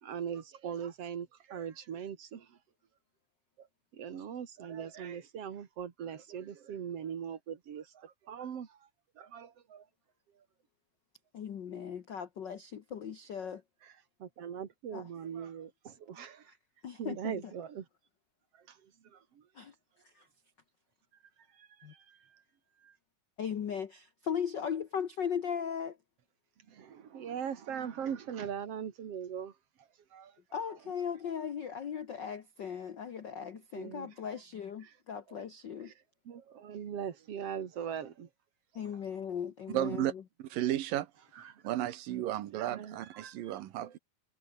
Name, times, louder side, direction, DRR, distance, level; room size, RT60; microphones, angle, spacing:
voice 1, 0.0-2.6 3.6-3.7 3.9-8.8 9.2-9.8 13.8-13.9 14.2-16.5 17.0-17.9 18.7-19.4 21.6-22.2 22.8-22.9 26.7-29.5 30.1-30.3 33.7-34.1 34.8-34.9 35.8-35.9 36.3-38.3 41.4-41.6 42.6-44.0, right 8 dB, 50° right, 2.7 m, -41 dB
voice 2, 11.3-13.6 14.9-15.0 16.5-16.6 16.8-17.4 19.5-19.7 20.1-20.3 21.8-21.9 23.4-26.0 30.5-35.9 38.7-40.1, left 7 dB, 80° left, 1.0 m, -38 dB
voice 3, 39.7-40.1 40.4-41.1 41.6-44.0, right 13 dB, 85° right, 3.0 m, -33 dB
omnidirectional pair, 3.9 m